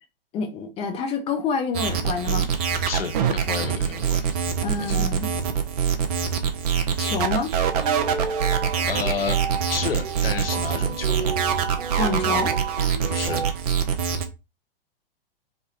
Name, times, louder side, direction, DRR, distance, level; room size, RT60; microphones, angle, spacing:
voice 1, 0.3-2.5 4.6-5.3 7.0-7.5 12.0-12.6, left 5 dB, 20° left, 0.8 m, -27 dB
sound 1, 1.7-14.3, right 7 dB, 40° right, 0.8 m, -24 dB
voice 2, 2.9-4.3 4.8-5.1 8.9-9.4 9.7-11.3 13.1-13.5, left 6 dB, 75° left, 1.0 m, -31 dB
sound 2, 7.6-13.5, right 6 dB, 75° right, 1.0 m, -31 dB
5.2 x 2.3 x 4.2 m
figure-of-eight pair, 110°, 29 cm